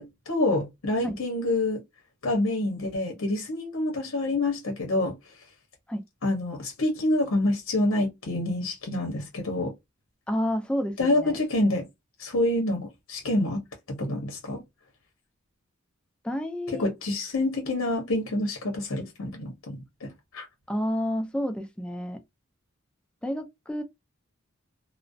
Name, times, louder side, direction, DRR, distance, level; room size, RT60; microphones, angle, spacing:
voice 1, 0.0-1.8 2.2-5.2 6.2-9.7 11.0-11.9 12.2-13.6 13.9-14.6 16.8-20.5, left 1 dB, 65° left, 0.8 m, -27 dB
voice 2, 10.3-11.4 16.2-16.9 20.7-22.2 23.2-23.8, equal, 5° left, 0.4 m, -30 dB
2.4 x 2.0 x 2.5 m
head